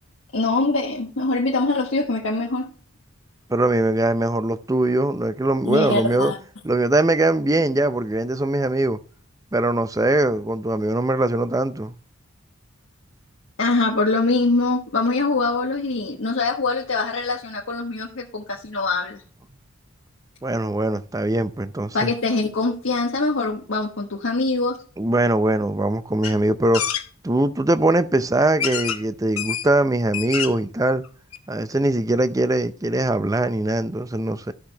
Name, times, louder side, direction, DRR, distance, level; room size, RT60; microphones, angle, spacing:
voice 1, 0.3-2.7 5.6-6.4 13.6-19.2 21.9-24.8, left 3 dB, 70° left, 1.4 m, -23 dB
voice 2, 3.5-6.3 6.6-9.0 9.5-11.9 20.4-22.1 25.0-27.0 27.2-31.0 31.5-34.5, right 2 dB, 15° right, 0.5 m, -21 dB
sound 1, 26.2-26.3 26.7-27.0 28.0-28.1 28.6-29.0 29.4-29.7 30.0-30.7 31.0-31.1 31.3-31.4, left 9 dB, 90° left, 1.0 m, -27 dB
13.0 x 5.9 x 3.4 m
head